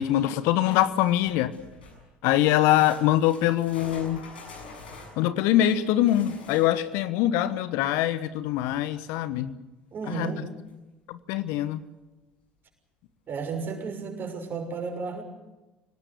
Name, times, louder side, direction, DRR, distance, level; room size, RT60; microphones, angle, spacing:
voice 1, 0.0-1.5 2.2-4.2 5.2-9.5 10.1-10.3 11.1-11.8, left 13 dB, 60° left, 14 dB, 1.2 m, -23 dB
sound 1, 0.7-2.1 2.6-7.0 10.2-10.3 10.7-10.8 11.5-11.6, left 3 dB, 80° left, 7.3 m, -46 dB
voice 2, 9.9-10.5 13.3-15.2, right 4 dB, 40° right, 4 dB, 6.4 m, -33 dB
25.5 x 19.0 x 8.1 m, 1.1 s
figure-of-eight pair, 60°, 5 cm